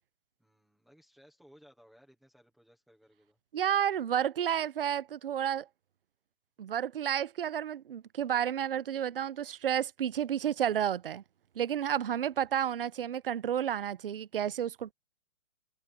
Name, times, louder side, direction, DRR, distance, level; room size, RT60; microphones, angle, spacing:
voice 1, 0.4-3.4 12.3-12.7, equal, ahead, 0.6 m, -61 dB
voice 2, 3.5-5.7 6.6-11.2 11.6-14.9, right 9 dB, 45° right, 0.5 m, -31 dB
hypercardioid pair, 175°, 41 cm